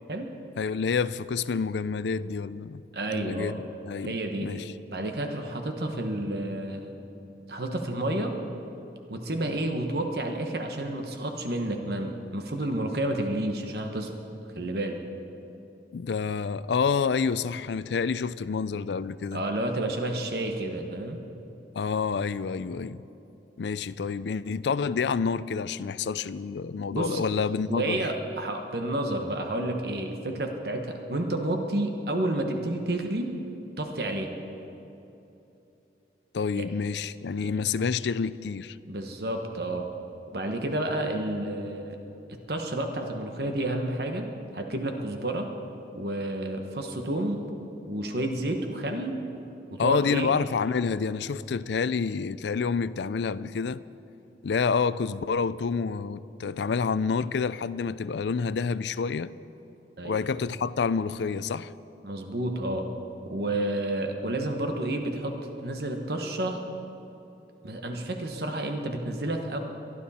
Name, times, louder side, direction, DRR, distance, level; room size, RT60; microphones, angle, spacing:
voice 1, 0.6-2.8 3.1-4.7 15.9-19.4 21.8-23.0 23.6-28.0 36.3-38.8 49.8-53.8 54.4-59.3 60.0-61.7, left 5 dB, 75° left, 0.4 m, -28 dB
voice 2, 2.9-3.6 4.0-4.5 4.9-6.9 7.5-8.4 9.1-14.1 14.5-15.0 19.3-21.2 26.9-27.2 27.7-33.3 33.8-34.3 36.5-36.7 37.4-37.5 38.9-39.9 40.3-42.0 42.5-45.5 45.9-47.4 47.9-49.2 49.7-50.3 60.0-60.3 62.0-62.9 63.2-66.6 67.6-69.6, right 1 dB, 60° right, 1.2 m, -30 dB
23.0 x 12.5 x 4.3 m
head